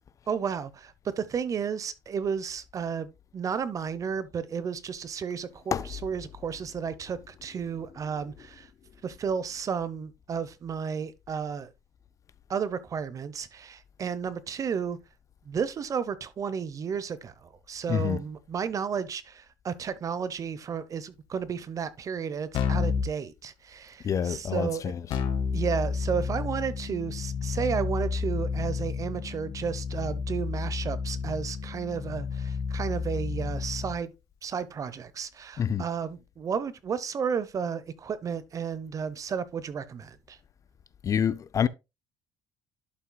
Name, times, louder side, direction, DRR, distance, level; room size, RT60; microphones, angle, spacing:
voice 1, 0.3-8.7 9.0-11.7 12.5-15.0 15.5-24.9 25.5-34.1 34.4-40.4, right 6 dB, 35° right, 0.8 m, -33 dB
voice 2, 17.9-18.2 24.0-25.0 35.6-35.8 41.0-41.7, left 8 dB, 35° left, 0.4 m, -27 dB
Keyboard (musical), 22.5-23.1 25.1-34.0, left 5 dB, 60° left, 1.5 m, -31 dB
11.5 x 5.7 x 2.3 m
cardioid pair, 105°, 9 cm